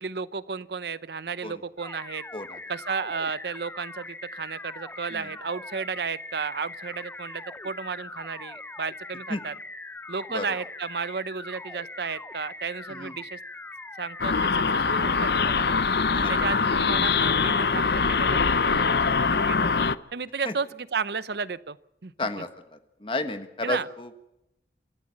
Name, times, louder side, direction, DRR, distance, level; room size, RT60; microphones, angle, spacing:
voice 1, 0.0-2.2 2.7-9.5 10.1-13.4 14.0-15.6 16.2-19.7 20.1-21.8 22.0-22.1 23.6-23.9, right 5 dB, 70° right, 17 dB, 0.7 m, -33 dB
sound 1, 1.8-15.9, left 2 dB, 10° left, 0.7 m, -41 dB
sound 2, 14.2-19.9, left 5 dB, 70° left, 0.7 m, -23 dB
voice 2, 23.0-24.1, left 2 dB, 30° left, 9 dB, 1.5 m, -31 dB
27.5 x 13.5 x 7.5 m, 0.86 s
head